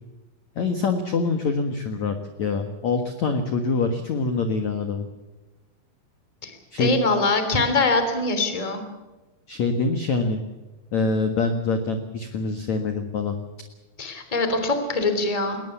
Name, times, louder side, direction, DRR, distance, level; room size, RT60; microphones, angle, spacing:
voice 1, 0.6-5.1 6.7-6.9 9.5-10.4 10.9-13.4, left 4 dB, 65° left, 6 dB, 1.8 m, -25 dB
voice 2, 6.4-8.8 14.0-15.6, left 3 dB, 10° left, 7 dB, 2.1 m, -23 dB
20.5 x 20.0 x 7.1 m, 1.1 s
omnidirectional pair, 5.7 m